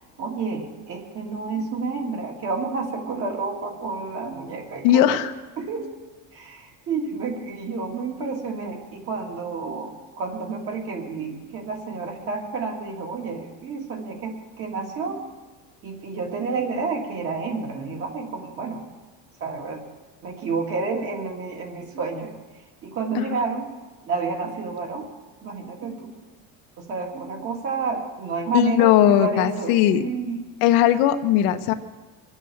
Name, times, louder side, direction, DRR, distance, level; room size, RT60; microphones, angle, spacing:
voice 1, 0.2-5.1 5.6-6.0 6.3-15.3 15.8-18.8 19.4-19.8 20.2-22.3 22.8-23.7 24.1-25.1 25.4-26.1 26.8-30.5, right 4 dB, 40° right, 1 dB, 2.8 m, -30 dB
voice 2, 4.8-5.3 23.1-23.4 28.5-30.0 30.6-31.7, left 11 dB, 80° left, 8 dB, 1.1 m, -18 dB
24.0 x 8.2 x 7.2 m, 1.3 s
cardioid pair, 170°, 36 cm